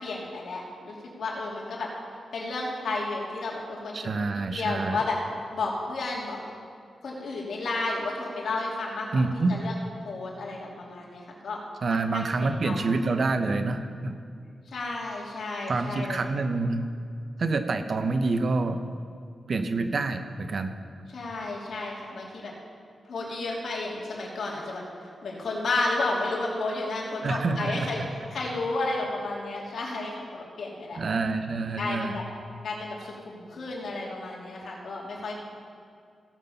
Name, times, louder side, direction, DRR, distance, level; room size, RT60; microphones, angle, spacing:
voice 1, 0.0-1.9 2.3-5.2 5.5-6.4 7.0-9.7 10.0-11.6 11.9-13.0 14.7-16.3 21.1-22.5 23.0-28.0 28.3-31.0 31.8-32.2 32.6-35.5, left 2 dB, 70° left, -4 dB, 2.9 m, -32 dB
voice 2, 3.9-5.0 9.1-9.5 11.8-14.1 15.7-16.9 17.4-18.8 19.5-20.8 27.2-27.9 31.0-32.2, right 3 dB, 55° right, 8 dB, 0.9 m, -27 dB
16.5 x 7.5 x 5.7 m, 2.2 s
cardioid pair, 85°, 0 cm